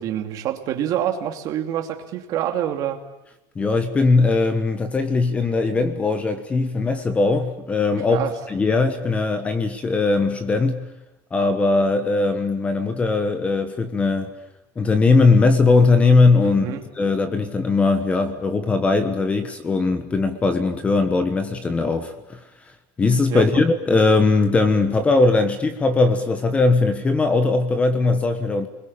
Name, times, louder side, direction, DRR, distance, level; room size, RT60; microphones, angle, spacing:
voice 1, 0.0-3.0 8.1-8.3 16.4-16.8 23.3-23.4, right 11 dB, 40° right, 5 dB, 2.6 m, -26 dB
voice 2, 3.5-10.9 11.3-14.3 14.8-22.4 23.0-28.7, left 3 dB, 15° left, 9 dB, 1.3 m, -19 dB
29.5 x 21.5 x 8.8 m, 0.93 s
cardioid pair, 175°, 9 cm